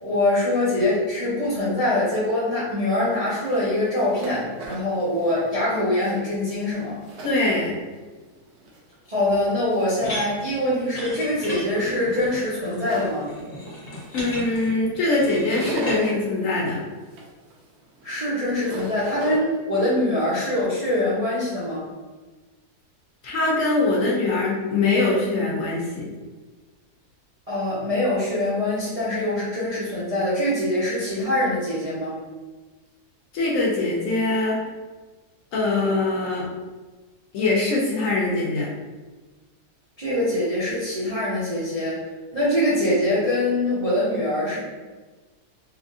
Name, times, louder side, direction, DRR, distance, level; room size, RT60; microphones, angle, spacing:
voice 1, 0.0-7.0 9.1-13.3 18.0-21.8 27.5-32.2 40.0-42.0 42.3-44.6, left 1 dB, 45° right, -10 dB, 0.5 m, -24 dB
sound 1, 3.0-8.0 8.4-9.2 9.7-10.2 10.7-14.5 14.8-16.1 16.6-19.4, right 2 dB, 80° right, 1.2 m, -38 dB
voice 2, 7.2-7.8 14.1-16.9 23.2-26.1 33.3-34.6 35.5-36.5 37.3-38.7, left 2 dB, 65° left, -4 dB, 0.9 m, -23 dB
sound 2, 10.0-16.0, left 1 dB, 45° left, 0.5 m, -36 dB
3.3 x 2.5 x 2.5 m, 1.3 s
omnidirectional pair, 1.7 m